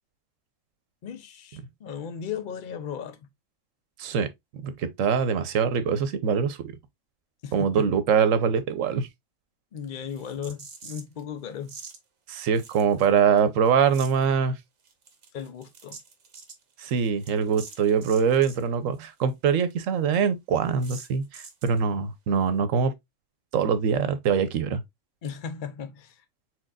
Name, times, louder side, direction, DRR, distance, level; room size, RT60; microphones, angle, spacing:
voice 1, 1.0-3.3 7.4-7.9 9.7-11.8 15.3-16.0 25.2-26.2, left 7 dB, 50° left, 0.7 m, -36 dB
voice 2, 4.6-6.7 7.5-9.1 12.3-14.6 16.8-22.9 23.5-24.8, right 7 dB, 85° right, 1.1 m, -23 dB
sound 1, 10.1-11.2 11.6-12.0 12.6-13.4 13.7-14.3 14.8-18.7 18.9-19.0 19.3-19.4 19.7-19.8 20.1-20.2 20.8-21.8, right 5 dB, 65° right, 1.3 m, -46 dB
4.5 x 4.1 x 2.4 m
omnidirectional pair, 1.3 m